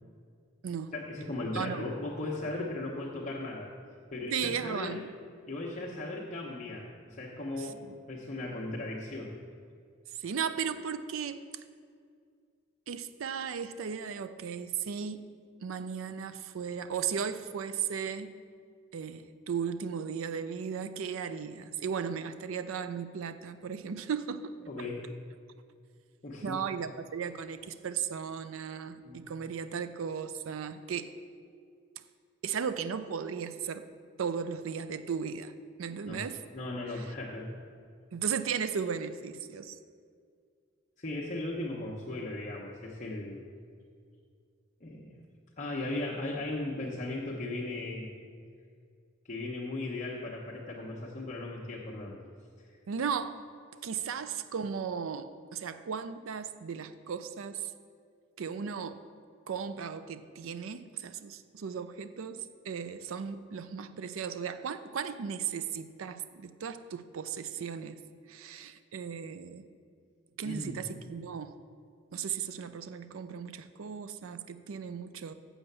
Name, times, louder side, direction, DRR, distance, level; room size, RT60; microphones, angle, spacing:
voice 1, 0.9-3.7 4.1-5.0 5.5-9.3 24.6-25.1 26.2-26.6 29.0-29.2 36.1-36.2 36.5-37.5 41.0-43.4 44.8-45.2 45.6-48.1 49.3-52.2 52.6-52.7 70.4-70.8, left 2 dB, 35° left, -5 dB, 0.9 m, -37 dB
voice 2, 1.5-1.9 4.3-5.1 7.6-8.0 10.1-11.4 12.9-15.3 15.6-18.3 18.9-24.5 26.4-31.1 32.4-33.9 34.2-35.5 35.8-36.4 36.9-37.1 38.1-39.8 52.9-53.4 53.8-57.7 58.4-59.0 59.5-68.0 68.3-69.7 70.4-71.6 72.1-75.3, right 7 dB, 75° right, 12 dB, 0.4 m, -36 dB
7.3 x 7.0 x 6.7 m, 2.2 s
head